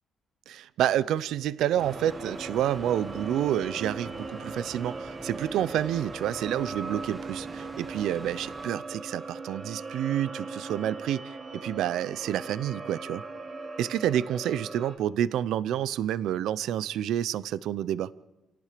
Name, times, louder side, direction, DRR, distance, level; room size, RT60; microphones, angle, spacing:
voice 1, 0.5-13.2 13.8-18.1, right 11 dB, 80° right, 0.6 m, -29 dB
sound 1, 1.8-8.7, right 2 dB, 15° right, 1.0 m, -45 dB
sound 2, 1.8-15.0, right 3 dB, 35° right, 3.2 m, -39 dB
28.5 x 18.0 x 5.1 m
cardioid pair, 170°, 0 cm